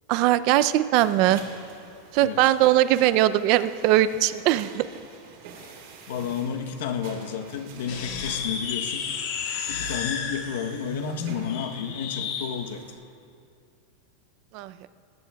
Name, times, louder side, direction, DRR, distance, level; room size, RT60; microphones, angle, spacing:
voice 1, 0.1-1.4 2.1-4.8 14.5-14.9, right 14 dB, 40° right, 14 dB, 0.4 m, -20 dB
sound 1, 0.9-12.9, right 5 dB, 60° right, 3.0 m, -47 dB
voice 2, 6.1-9.1 9.7-13.0, left 7 dB, 80° left, 5 dB, 0.9 m, -32 dB
sound 2, 7.8-12.5, left 6 dB, 55° left, 1.5 m, -32 dB
20.5 x 18.0 x 2.3 m, 2.5 s
supercardioid pair, 175°, 0 cm